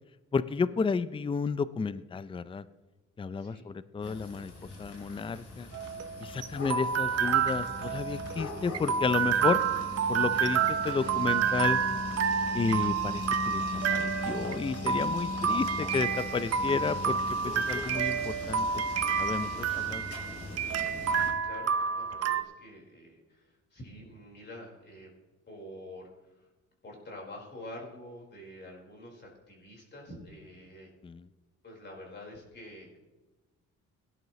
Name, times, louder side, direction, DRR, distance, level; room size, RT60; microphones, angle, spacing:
voice 1, 0.3-2.6 3.2-4.5 4.8-5.7 6.2-9.6 10.1-11.8 12.5-13.6 13.9-17.2 17.4-18.8 19.2-20.0 31.0-31.2, left 5 dB, 20° left, 16 dB, 0.5 m, -32 dB
sound 1, 4.0-21.3, left 3 dB, 50° left, 3.4 m, -40 dB
sound 2, 5.7-22.4, right 7 dB, 55° right, 0.8 m, -29 dB
voice 2, 21.0-25.1 25.5-26.5 26.8-30.9 31.6-33.0, left 1 dB, 35° left, -1 dB, 4.6 m, -47 dB
17.5 x 11.0 x 3.2 m, 1.2 s
cardioid pair, 90°, 30 cm